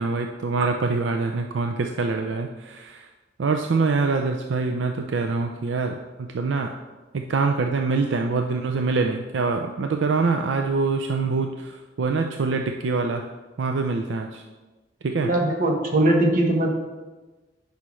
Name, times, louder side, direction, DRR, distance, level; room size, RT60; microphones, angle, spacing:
voice 1, 0.0-3.1 3.4-6.7 7.1-13.2 13.6-14.4 15.0-15.3, right 4 dB, 80° right, 4 dB, 0.4 m, -25 dB
voice 2, 15.2-16.7, right 1 dB, 50° right, 1 dB, 1.2 m, -20 dB
9.7 x 5.6 x 3.1 m, 1.2 s
head